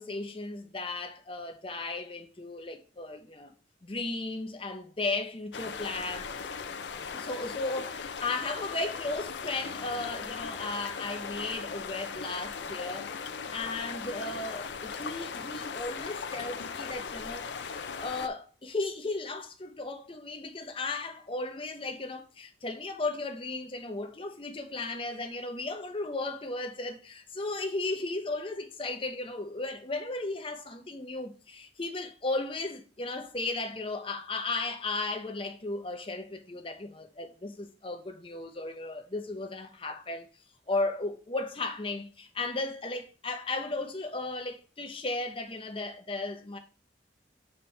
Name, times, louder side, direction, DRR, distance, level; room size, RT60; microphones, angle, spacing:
voice 1, 0.0-3.5 3.8-6.3 7.1-40.3 40.7-46.6, left 2 dB, 30° left, 0.8 m, -35 dB
sound 1, 5.5-18.3, left 5 dB, 75° left, 0.5 m, -38 dB
7.1 x 4.1 x 3.3 m
head